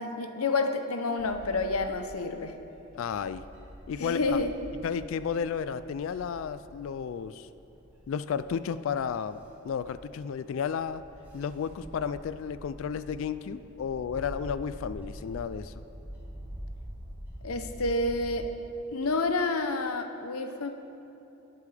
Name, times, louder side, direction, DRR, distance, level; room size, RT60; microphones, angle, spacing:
voice 1, 0.0-2.5 4.0-4.5 17.4-18.5 18.9-20.7, left 3 dB, 90° left, 7 dB, 0.8 m, -29 dB
Bird / Wind, 1.2-18.2, equal, 10° right, 2.6 m, -46 dB
voice 2, 2.9-3.5 3.9-4.4 4.8-7.5 8.1-9.4 9.6-11.1 11.3-15.7, left 7 dB, 65° left, 13 dB, 0.3 m, -32 dB
19.0 x 8.4 x 3.4 m, 3.0 s
head